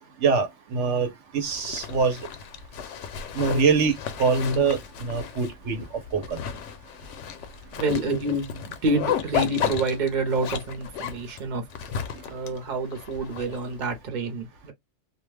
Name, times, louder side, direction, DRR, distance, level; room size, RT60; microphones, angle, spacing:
voice 1, 0.2-2.2 3.3-5.9 6.1-6.4, right 5 dB, 80° right, 1.1 m, -24 dB
Zipper (clothing), 1.5-14.0, left 8 dB, 90° left, 0.9 m, -34 dB
voice 2, 7.8-11.6 12.3-14.7, right 2 dB, 45° right, 0.9 m, -28 dB
2.4 x 2.2 x 3.2 m
omnidirectional pair, 1.2 m